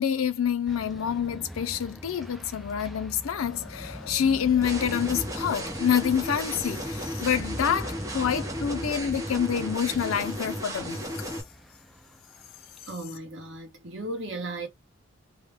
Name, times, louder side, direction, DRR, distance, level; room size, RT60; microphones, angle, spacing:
voice 1, 0.0-11.3, left 8 dB, 90° left, 0.5 m, -27 dB
sound 1, 0.7-12.9, equal, ahead, 0.3 m, -42 dB
sound 2, 4.6-11.4, equal, 15° right, 0.7 m, -34 dB
voice 2, 12.9-14.7, right 2 dB, 65° right, 1.1 m, -35 dB
2.3 x 2.1 x 3.3 m
head